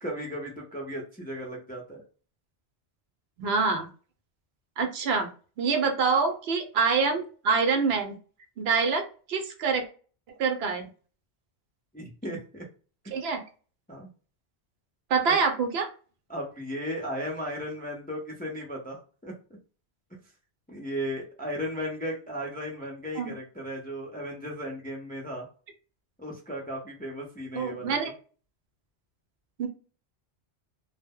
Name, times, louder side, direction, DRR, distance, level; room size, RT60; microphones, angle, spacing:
voice 1, 0.0-2.0 11.9-12.6 13.9-14.1 15.2-15.4 16.3-19.3 20.7-25.5 26.2-28.1, equal, 15° left, -1 dB, 0.4 m, -35 dB
voice 2, 3.4-3.9 4.8-5.3 5.6-8.2 8.6-9.9 10.4-10.9 13.1-13.4 15.1-15.9 23.2-23.3 27.6-28.1 29.6-29.7, right 5 dB, 75° right, 6 dB, 0.8 m, -26 dB
2.1 x 2.0 x 3.4 m, 0.38 s
omnidirectional pair, 1.1 m